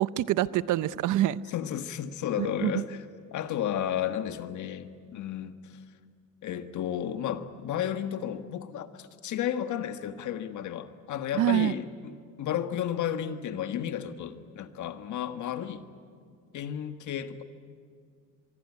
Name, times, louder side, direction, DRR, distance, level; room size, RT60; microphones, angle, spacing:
voice 1, 0.0-1.4 2.4-2.8 11.3-11.7, right 13 dB, 85° right, 17 dB, 0.7 m, -26 dB
voice 2, 1.5-3.0 3.3-5.8 6.4-12.1 12.4-15.8 16.5-17.4, left 10 dB, 75° left, 9 dB, 1.5 m, -33 dB
24.0 x 23.5 x 9.7 m, 2.2 s
cardioid pair, 90°, 30 cm